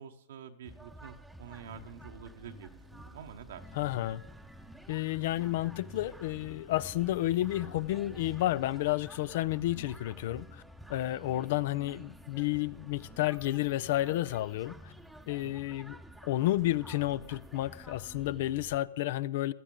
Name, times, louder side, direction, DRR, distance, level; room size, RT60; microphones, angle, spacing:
voice 1, 0.0-3.6 11.2-11.6 15.4-15.8, right 8 dB, 65° right, 0.9 m, -48 dB
sound 1, 0.6-18.8, equal, ahead, 0.9 m, -50 dB
voice 2, 3.7-4.2 4.9-10.6 10.9-14.9 15.3-16.0 16.2-19.5, left 15 dB, 55° left, 0.5 m, -31 dB
16.0 x 12.0 x 3.8 m
hypercardioid pair, 105°, 0 cm